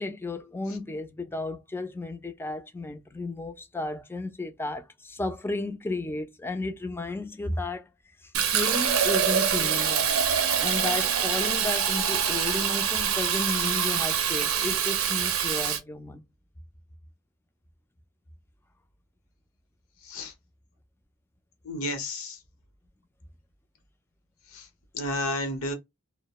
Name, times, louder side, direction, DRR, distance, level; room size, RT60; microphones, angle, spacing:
voice 1, 0.0-7.8 8.2-10.1 10.6-16.3, left 2 dB, 10° left, 0.3 m, -33 dB
Fill (with liquid), 8.3-15.8, right 8 dB, 75° right, 0.5 m, -25 dB
voice 2, 21.6-22.4 24.5-24.7 24.9-25.7, left 1 dB, 80° left, 0.8 m, -31 dB
2.2 x 2.0 x 2.9 m
head